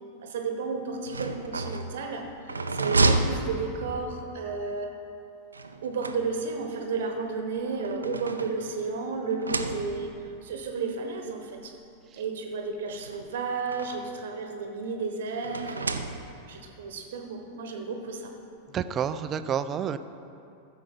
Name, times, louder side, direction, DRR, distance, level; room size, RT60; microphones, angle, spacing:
voice 1, 0.2-2.3 2.7-4.9 5.8-10.1 10.4-11.7 12.1-16.2 16.5-18.3, right 4 dB, 60° right, 4 dB, 1.1 m, -32 dB
sound 1, 0.9-4.2 5.5-6.7 7.5-8.9 9.3-10.2 11.2-11.3 11.6-11.7 12.9-14.2 15.4-16.6, right 2 dB, 80° right, 0.5 m, -30 dB
voice 2, 18.7-20.0, right 8 dB, 30° right, 12 dB, 0.5 m, -29 dB
14.0 x 6.9 x 5.3 m, 2.6 s
figure-of-eight pair, 90°, 0 cm